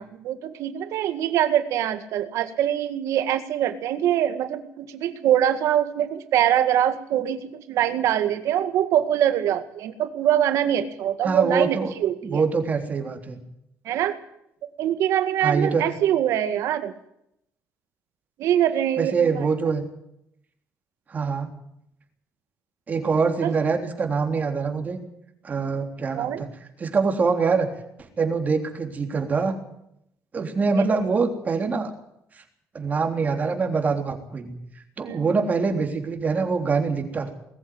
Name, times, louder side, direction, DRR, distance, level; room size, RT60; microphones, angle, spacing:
voice 1, 0.0-12.4 13.9-14.2 14.8-16.9 18.4-19.4 23.4-23.5 26.1-26.4 30.8-31.0 35.0-35.2, right 11 dB, 80° right, 9 dB, 2.0 m, -23 dB
voice 2, 11.2-11.9 12.2-13.4 15.4-15.8 19.0-19.8 21.1-21.5 22.9-25.0 25.4-26.5 26.8-27.7 28.2-29.5 30.3-31.9 32.4-32.5 32.7-34.5 35.0-37.3, right 4 dB, 30° right, 4 dB, 3.5 m, -24 dB
20.5 x 14.5 x 9.6 m, 0.77 s
cardioid pair, 135°, 5 cm